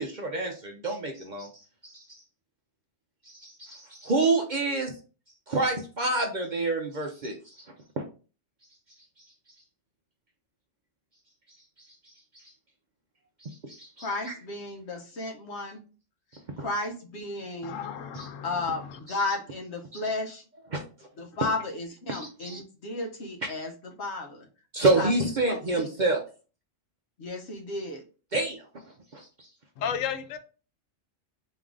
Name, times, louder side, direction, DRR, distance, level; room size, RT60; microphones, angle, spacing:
voice 1, 0.0-1.5 1.8-2.2 3.2-5.0 5.5-8.0 11.8-12.5 13.4-14.1 16.6-16.7 18.2-18.3 20.7-20.8 22.1-22.6 24.7-26.2 28.3-28.6 29.1-29.5, right 2 dB, 50° right, 0.6 m, -28 dB
voice 2, 14.0-15.8 16.6-17.8 18.4-20.4 21.2-24.5 25.0-25.9 27.2-28.0, left 2 dB, 60° left, 1.1 m, -34 dB
voice 3, 17.6-19.0 29.8-30.4, left 8 dB, 85° left, 1.0 m, -34 dB
3.6 x 3.1 x 3.6 m
omnidirectional pair, 1.3 m